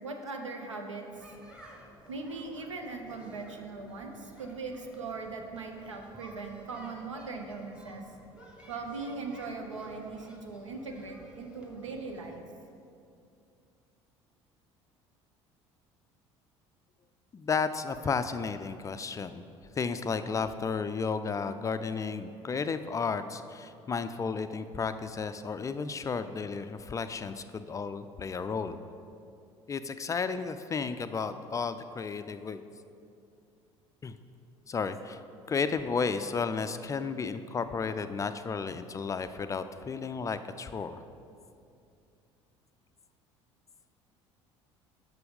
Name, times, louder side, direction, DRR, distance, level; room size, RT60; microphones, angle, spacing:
voice 1, 0.0-1.2 2.1-8.0 8.7-12.4, right 3 dB, 80° right, 3 dB, 0.7 m, -40 dB
sound 1, 1.1-12.4, right 1 dB, 5° right, 1.3 m, -53 dB
voice 2, 17.3-19.5 19.8-28.8 29.7-32.6 34.0-34.1 34.7-35.2 35.5-41.0, left 5 dB, 20° left, 10 dB, 0.3 m, -33 dB
6.8 x 6.2 x 5.2 m, 2.5 s
figure-of-eight pair, 60°, 15 cm